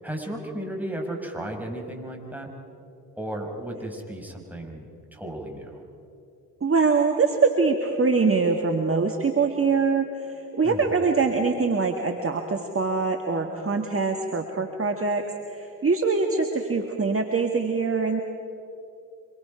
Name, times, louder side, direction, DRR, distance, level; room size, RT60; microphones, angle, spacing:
voice 1, 0.0-2.5 3.2-5.8 10.6-10.9, right 1 dB, 5° right, 1 dB, 5.2 m, -34 dB
voice 2, 6.6-15.2 15.5-18.2, right 4 dB, 30° right, 4 dB, 1.8 m, -23 dB
25.5 x 23.0 x 5.2 m, 2.6 s
hypercardioid pair, 45°, 45 cm